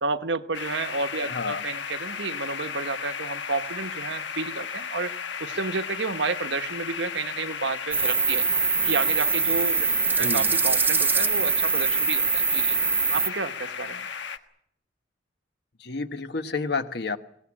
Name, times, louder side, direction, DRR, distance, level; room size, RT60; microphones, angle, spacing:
voice 1, 0.0-5.1 5.4-8.5 8.8-9.9 10.2-12.8 13.1-14.1, right 4 dB, 75° right, 10 dB, 1.1 m, -31 dB
sound 1, 0.5-14.4, left 6 dB, 80° left, 1.4 m, -35 dB
voice 2, 1.3-1.6 10.2-10.5 15.8-17.2, left 4 dB, 60° left, 9 dB, 1.3 m, -30 dB
sound 2, 7.9-13.3, right 5 dB, 10° right, 0.9 m, -23 dB
23.0 x 18.5 x 8.7 m, 0.71 s
head